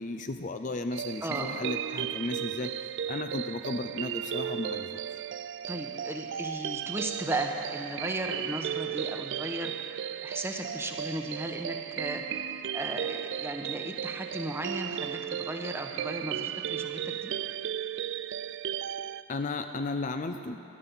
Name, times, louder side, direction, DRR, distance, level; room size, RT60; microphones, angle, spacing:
voice 1, 0.0-5.0 19.3-20.6, left 2 dB, 40° left, 7 dB, 0.5 m, -34 dB
sound 1, 0.9-19.2, right 10 dB, 60° right, 0.3 m, -35 dB
voice 2, 1.2-1.6 5.7-9.7 10.2-12.2 12.7-17.3, right 1 dB, 10° right, 3 dB, 1.0 m, -35 dB
17.5 x 11.5 x 5.6 m, 3.0 s
head